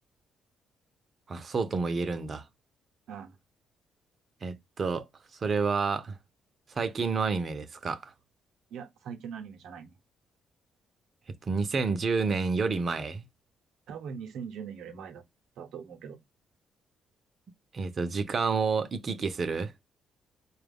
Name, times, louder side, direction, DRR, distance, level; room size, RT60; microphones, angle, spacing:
voice 1, 1.3-2.4 4.4-5.1 5.4-6.2 6.7-8.1 11.4-13.2 17.7-19.7, right 4 dB, 45° right, 0.6 m, -29 dB
voice 2, 8.7-10.0 13.9-15.2 15.6-16.2, right 7 dB, 80° right, 0.7 m, -41 dB
4.5 x 2.3 x 3.5 m
cardioid pair, 90°, 0 cm